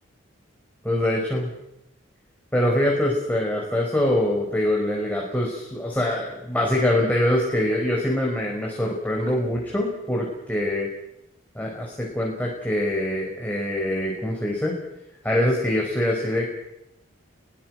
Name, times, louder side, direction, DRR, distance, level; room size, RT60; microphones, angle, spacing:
voice 1, 0.8-1.5 2.5-10.9 11.5-14.7 15.2-16.5, left 1 dB, 10° left, -2 dB, 4.8 m, -24 dB
26.0 x 22.5 x 6.3 m, 0.85 s
head